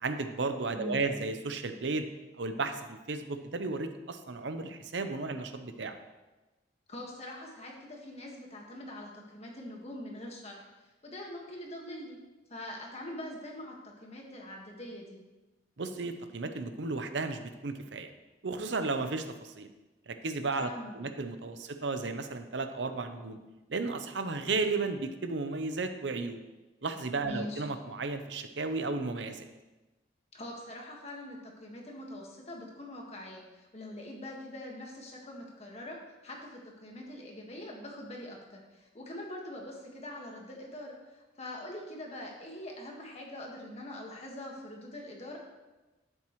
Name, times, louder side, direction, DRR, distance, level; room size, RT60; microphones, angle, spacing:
voice 1, 0.0-2.1 2.4-6.0 15.8-18.1 18.4-19.7 20.1-20.7 20.9-23.4 23.7-26.4 26.8-29.4, right 3 dB, 75° right, 8 dB, 0.7 m, -34 dB
voice 2, 0.8-1.1 6.9-10.7 11.0-12.2 12.5-15.2 20.6-21.0 21.6-21.7 27.2-27.6 30.3-36.0 36.2-40.9 41.4-45.4, left 1 dB, 35° left, 0 dB, 1.6 m, -43 dB
11.5 x 7.5 x 3.1 m, 1.1 s
head